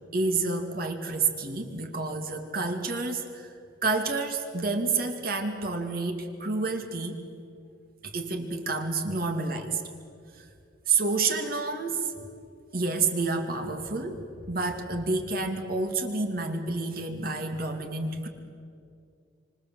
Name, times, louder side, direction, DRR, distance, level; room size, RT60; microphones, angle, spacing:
voice 1, 0.1-3.5 3.8-7.2 8.0-9.8 10.4-10.5 10.9-12.1 12.7-14.2 14.5-18.3, right 3 dB, 50° right, 4 dB, 2.3 m, -29 dB
28.0 x 26.5 x 7.6 m, 2.4 s
head